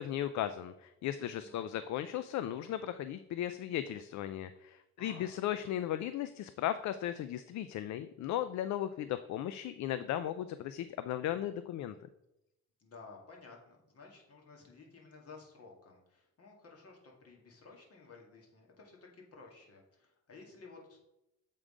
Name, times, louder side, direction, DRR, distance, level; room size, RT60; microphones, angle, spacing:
voice 1, 0.0-12.0, left 11 dB, 70° left, 12 dB, 0.4 m, -36 dB
voice 2, 1.1-1.7 5.0-5.7 12.8-21.0, left 4 dB, 50° left, -1 dB, 2.0 m, -55 dB
7.7 x 3.8 x 4.9 m, 0.88 s
cardioid pair, 90°, 30 cm